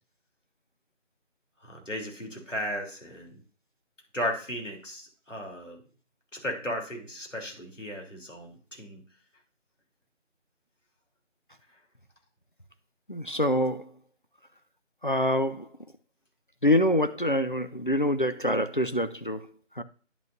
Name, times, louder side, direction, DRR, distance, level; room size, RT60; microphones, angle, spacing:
voice 1, 1.6-3.3 4.1-5.8 6.3-9.0, equal, 75° left, 3.3 m, -35 dB
voice 2, 13.1-13.9 15.0-15.7 16.6-19.8, left 1 dB, 45° left, 0.5 m, -26 dB
10.5 x 6.1 x 2.6 m
figure-of-eight pair, 170°, 37 cm